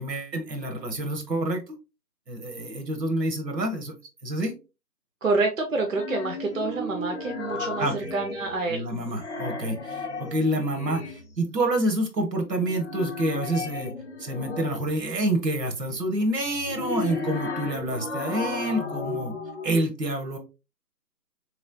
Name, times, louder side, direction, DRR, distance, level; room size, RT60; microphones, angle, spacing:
voice 1, 0.0-1.6 2.3-3.9 4.2-4.5 7.8-8.1 8.7-13.9 14.2-19.3 19.6-20.4, right 1 dB, 80° right, 6 dB, 1.2 m, -28 dB
voice 2, 5.2-9.2, right 3 dB, 55° right, 3 dB, 0.6 m, -28 dB
sound 1, 5.9-8.8 9.1-11.4 12.5-15.0 16.5-19.8, left 3 dB, 45° left, 0.5 m, -34 dB
3.2 x 3.0 x 2.5 m, 0.29 s
figure-of-eight pair, 170°, 49 cm